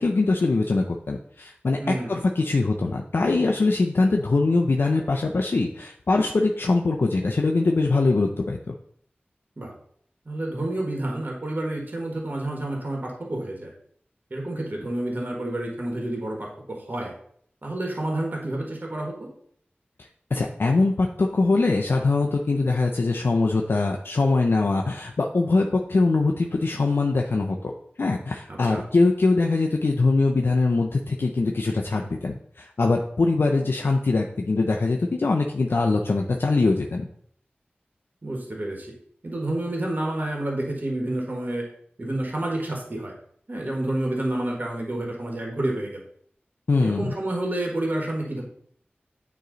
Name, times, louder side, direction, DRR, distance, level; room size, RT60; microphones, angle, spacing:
voice 1, 0.0-8.7 20.3-27.7 28.0-37.1 46.7-47.1, left 3 dB, 70° left, 1 dB, 0.5 m, -22 dB
voice 2, 1.8-2.1 9.6-9.7 10.2-13.7 14.3-17.1 17.6-19.3 28.5-28.8 38.2-38.9 39.2-41.6 42.0-43.1 43.5-46.0 46.8-48.4, right 1 dB, 50° right, -1 dB, 1.5 m, -29 dB
9.1 x 3.1 x 3.9 m, 0.64 s
wide cardioid pair, 70°, 4 cm